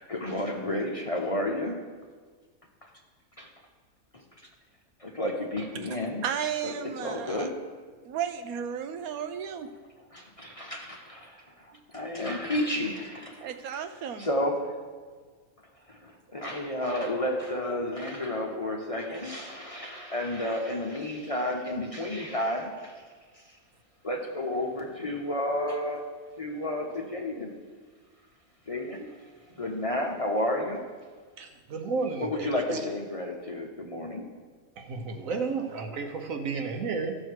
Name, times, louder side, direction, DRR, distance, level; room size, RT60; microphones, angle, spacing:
voice 1, 0.0-1.8 2.8-2.9 3.4-3.5 4.1-4.2 5.0-6.2 6.6-7.6 10.1-13.4 13.7-13.8 14.2-14.8 15.9-23.0 23.3-23.4 24.0-26.0 26.4-27.5 28.7-29.1 29.5-30.8 32.2-34.2, left 1 dB, 30° left, 0 dB, 0.8 m, -31 dB
voice 2, 5.7-7.5 8.0-9.7 13.4-14.3, right 8 dB, 85° right, 8 dB, 1.2 m, -34 dB
voice 3, 31.4-32.8 34.8-37.2, right 4 dB, 70° right, 5 dB, 1.4 m, -32 dB
15.0 x 6.6 x 4.6 m, 1.5 s
omnidirectional pair, 1.5 m